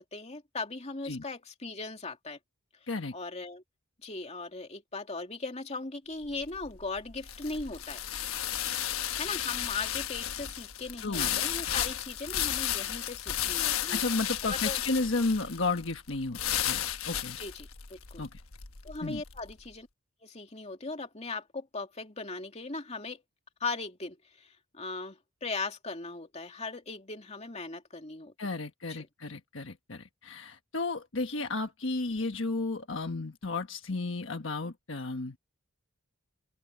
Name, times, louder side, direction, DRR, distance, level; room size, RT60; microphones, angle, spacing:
voice 1, 0.0-2.4 3.1-3.6 4.0-8.0 9.2-14.0 14.4-14.8 17.4-18.3 18.8-19.9 20.2-23.2 23.6-28.3 29.0-29.1, left 3 dB, 30° left, 2.7 m, -38 dB
sound 1, 6.2-19.5, left 11 dB, 85° left, 1.2 m, -33 dB
voice 2, 11.0-11.4 13.7-17.4 18.2-18.4 19.0-19.2 28.4-35.4, left 3 dB, 60° left, 1.4 m, -33 dB
open air
head